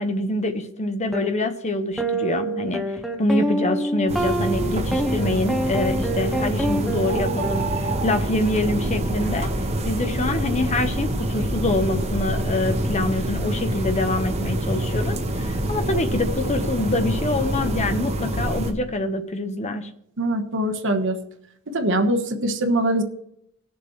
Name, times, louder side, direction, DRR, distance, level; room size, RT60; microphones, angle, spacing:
voice 1, 0.0-9.5 9.8-19.9, left 2 dB, 30° left, 8 dB, 0.8 m, -25 dB
sound 1, 1.1-1.3 2.0-8.3, right 1 dB, ahead, 0.8 m, -26 dB
sound 2, 4.1-18.7, right 1 dB, 30° right, 1.0 m, -26 dB
voice 2, 20.2-21.2 21.7-23.0, right 1 dB, 60° right, 5 dB, 1.2 m, -22 dB
19.0 x 6.9 x 3.2 m, 0.75 s
head